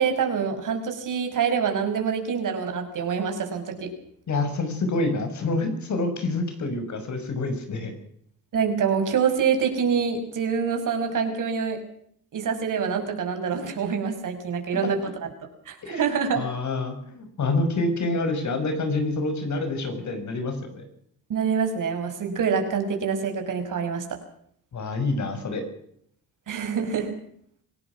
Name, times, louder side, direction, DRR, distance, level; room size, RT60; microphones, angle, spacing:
voice 1, 0.0-3.9 8.5-11.8 12.3-15.3 15.7-16.4 21.3-24.0 26.5-27.1, right 6 dB, 55° right, 5 dB, 6.1 m, -26 dB
voice 2, 4.3-7.9 15.8-16.0 16.3-20.9 24.7-25.6, left 2 dB, 50° left, 7 dB, 6.2 m, -27 dB
26.0 x 18.0 x 6.2 m, 0.67 s
cardioid pair, 120°, 37 cm